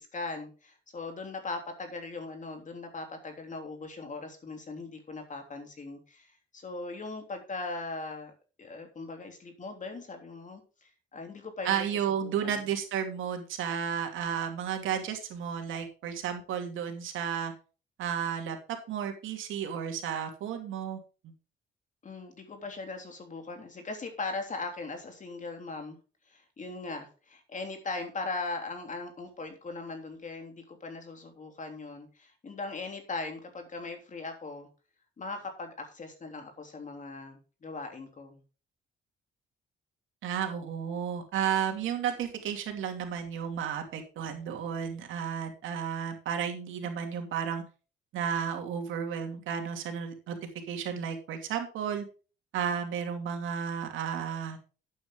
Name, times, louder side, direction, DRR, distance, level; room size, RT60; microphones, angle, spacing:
voice 1, 0.0-8.3 8.6-12.6 22.0-26.0 26.3-34.7 35.2-38.4, left 3 dB, 40° left, 4 dB, 3.3 m, -39 dB
voice 2, 11.6-17.5 18.0-18.6 18.9-21.3 40.2-47.6 48.1-50.4 50.7-52.1 52.5-54.6, right 8 dB, 85° right, 4 dB, 2.7 m, -33 dB
11.5 x 8.7 x 3.8 m, 0.35 s
cardioid pair, 90°, 20 cm